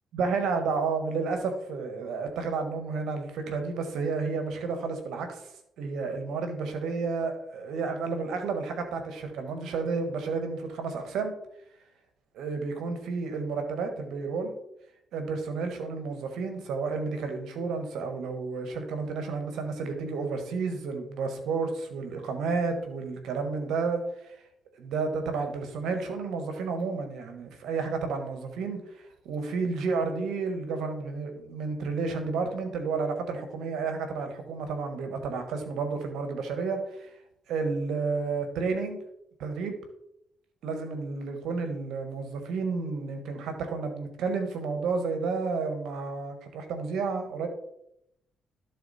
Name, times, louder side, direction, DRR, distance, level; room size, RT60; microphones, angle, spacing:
voice 1, 0.1-5.5 5.8-11.3 12.3-14.5 15.1-24.4 24.8-37.1 37.5-39.0 39.4-39.8 40.6-47.5, right 4 dB, 80° right, 6 dB, 1.4 m, -31 dB
12.0 x 4.2 x 4.2 m, 0.79 s
cardioid pair, 90°, 0 cm